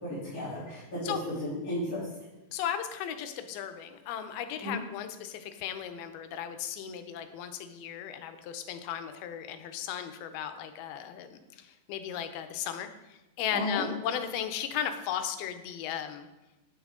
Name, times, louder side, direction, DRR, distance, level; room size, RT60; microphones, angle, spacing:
voice 1, 0.0-2.1 4.6-4.8 13.5-13.8, left 1 dB, 25° left, -12 dB, 2.9 m, -34 dB
voice 2, 2.5-16.3, left 9 dB, 85° left, 8 dB, 2.6 m, -36 dB
9.6 x 8.6 x 3.7 m, 1.0 s
omnidirectional pair, 4.3 m